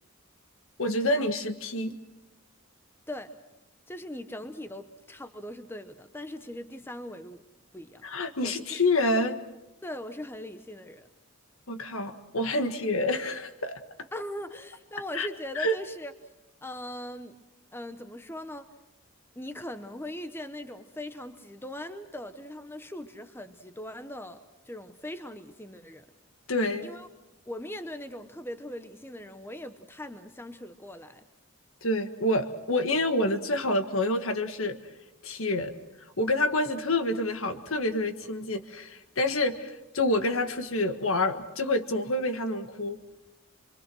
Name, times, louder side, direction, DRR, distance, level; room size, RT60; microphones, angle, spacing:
voice 1, 0.8-2.0 8.0-9.4 11.7-13.8 15.1-15.3 15.6-15.8 26.5-26.9 31.8-34.8 35.2-35.7 36.2-43.0, left 1 dB, 70° left, 8 dB, 1.6 m, -27 dB
voice 2, 3.9-7.4 7.7-8.0 8.4-8.8 9.8-11.1 14.1-16.1 16.6-17.4 17.7-18.7 19.4-24.4 24.7-26.0 26.8-27.1 27.5-31.3, left 1 dB, 10° left, 10 dB, 0.8 m, -40 dB
26.0 x 23.5 x 6.2 m, 1.0 s
head